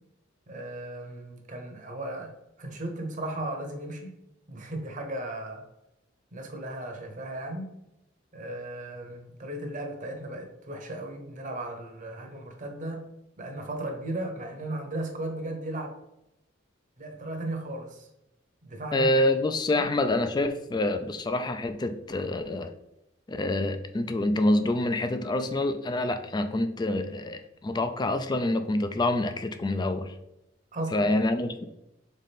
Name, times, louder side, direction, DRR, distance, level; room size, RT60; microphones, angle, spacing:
voice 1, 0.5-4.1 4.5-5.7 6.3-7.7 8.3-13.1 13.4-16.0 17.0-18.1 18.6-19.1 19.8-19.9 30.7-31.1, right 1 dB, 40° right, 0.9 m, -36 dB
voice 2, 18.9-22.7 23.3-30.1 30.9-31.6, left 1 dB, 20° left, 0.3 m, -27 dB
4.2 x 3.7 x 3.5 m
head